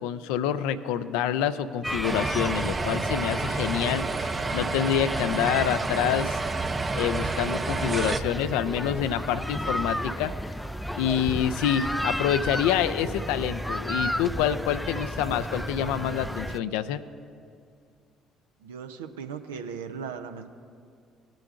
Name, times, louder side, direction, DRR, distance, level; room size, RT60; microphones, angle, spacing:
voice 1, 0.0-6.4 6.9-10.3 11.0-17.0, left 9 dB, 70° left, 12 dB, 0.4 m, -27 dB
sound 1, 1.8-16.6, equal, 5° left, 0.3 m, -33 dB
sound 2, 2.0-8.2, right 3 dB, 30° right, 0.6 m, -30 dB
voice 2, 18.6-20.5, right 6 dB, 80° right, 7 dB, 0.6 m, -37 dB
18.0 x 9.0 x 2.5 m, 2.2 s
figure-of-eight pair, 50°, 0 cm